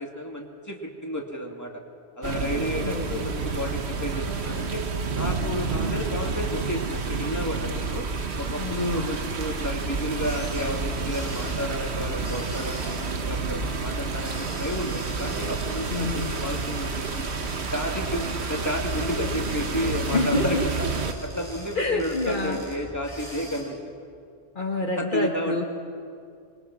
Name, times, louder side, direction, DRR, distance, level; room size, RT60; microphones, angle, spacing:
voice 1, 0.0-1.7 2.2-4.8 5.1-8.1 8.4-12.9 13.2-17.3 17.7-20.9 21.2-23.8 24.9-25.6, equal, 15° left, 0 dB, 2.5 m, -31 dB
sound 1, 2.2-21.1, right 4 dB, 85° right, 1.5 m, -30 dB
voice 2, 8.6-9.2 15.9-16.4 20.1-20.7 21.7-22.6 24.5-25.7, left 3 dB, 50° left, 1 dB, 1.5 m, -27 dB
sound 2, 10.1-23.6, equal, 45° right, 7.0 m, -42 dB
26.5 x 22.0 x 6.2 m, 2.3 s
omnidirectional pair, 1.1 m